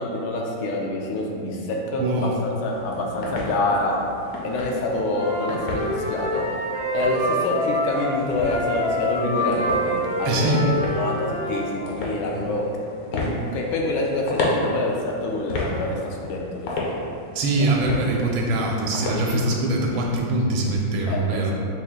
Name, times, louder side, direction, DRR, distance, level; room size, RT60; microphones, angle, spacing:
voice 1, 0.0-4.0 4.4-5.8 6.1-6.4 6.9-12.7 13.1-17.0 17.6-18.0 19.3-19.4 21.1-21.4, left 2 dB, 85° left, -1 dB, 1.4 m, -26 dB
voice 2, 2.0-2.4 10.2-10.7 12.3-12.5 17.3-21.5, right 2 dB, 80° right, -1 dB, 1.4 m, -23 dB
sound 1, 2.6-19.5, left 1 dB, 65° left, 1.0 m, -33 dB
Wind instrument woodwind instrument, 5.1-11.7, equal, 40° left, 0.7 m, -27 dB
5.3 x 2.6 x 3.7 m, 2.5 s
omnidirectional pair, 2.2 m